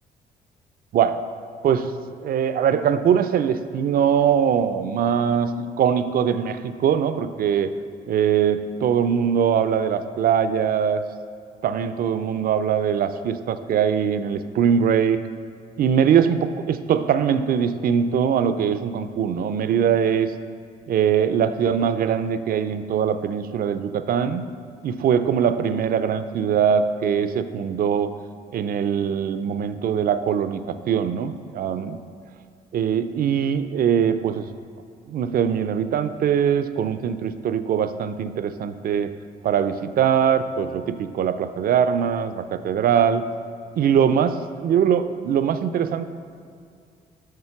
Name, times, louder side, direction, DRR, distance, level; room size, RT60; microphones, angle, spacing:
voice 1, 0.9-1.3 1.6-1.9 2.2-7.7 8.1-11.0 11.6-15.2 15.8-20.3 20.9-24.4 24.8-28.1 28.5-32.0 32.7-34.5 35.1-39.1 39.4-43.2 43.8-46.1, right 8 dB, 60° right, 11 dB, 0.5 m, -22 dB
6.7 x 6.3 x 5.8 m, 2.3 s
supercardioid pair, 70°, 17 cm